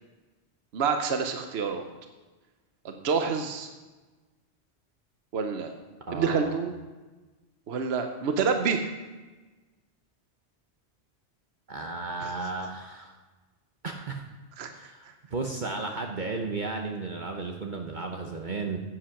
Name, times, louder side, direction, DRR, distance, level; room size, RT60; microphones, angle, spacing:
voice 1, 0.7-1.8 2.8-3.7 5.3-5.7 6.1-6.7 7.7-8.8 12.2-12.3 14.6-14.9, right 5 dB, 70° right, 5 dB, 1.1 m, -28 dB
voice 2, 6.1-6.5 11.7-13.2 13.8-14.2 14.7-18.8, right 3 dB, 45° right, 2 dB, 1.0 m, -34 dB
10.0 x 8.9 x 5.8 m, 1.2 s
omnidirectional pair, 1.1 m